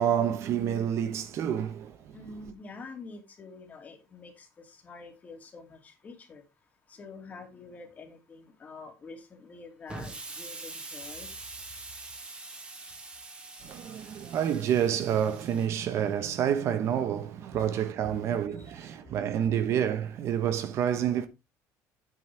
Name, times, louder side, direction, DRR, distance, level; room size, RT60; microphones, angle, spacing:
voice 1, 0.0-2.2 13.6-21.3, right 9 dB, 50° right, 1.0 m, -28 dB
voice 2, 2.1-6.4 6.9-11.3 17.6-17.7 18.8-18.9, left 3 dB, 25° left, 2.5 m, -47 dB
Explosion, 9.9-15.7, right 3 dB, 20° right, 2.0 m, -44 dB
9.3 x 8.9 x 3.3 m
cardioid pair, 165°, 6 cm